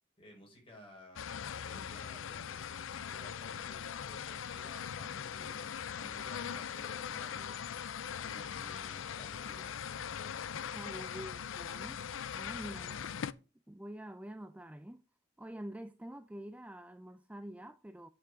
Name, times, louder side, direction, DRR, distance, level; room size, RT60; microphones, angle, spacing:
voice 1, 0.2-1.2 1.6-9.8, equal, 30° left, 4.9 m, -55 dB
sound 1, 1.2-13.3, left 8 dB, 85° left, 0.5 m, -41 dB
voice 2, 10.7-12.1 12.3-13.2 13.7-15.0 15.4-18.1, right 1 dB, 5° right, 0.4 m, -46 dB
9.2 x 5.9 x 5.0 m
head